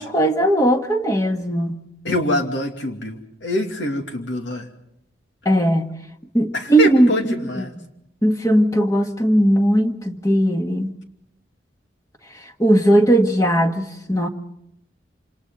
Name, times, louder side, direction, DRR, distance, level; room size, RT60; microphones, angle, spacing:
voice 1, 0.0-1.8 5.5-5.9 6.3-7.9 8.2-10.9 12.6-14.3, right 1 dB, 20° left, 5 dB, 1.6 m, -18 dB
voice 2, 2.0-4.7 6.5-7.7, left 2 dB, 80° left, 3 dB, 2.6 m, -24 dB
27.5 x 27.5 x 3.9 m, 0.77 s
head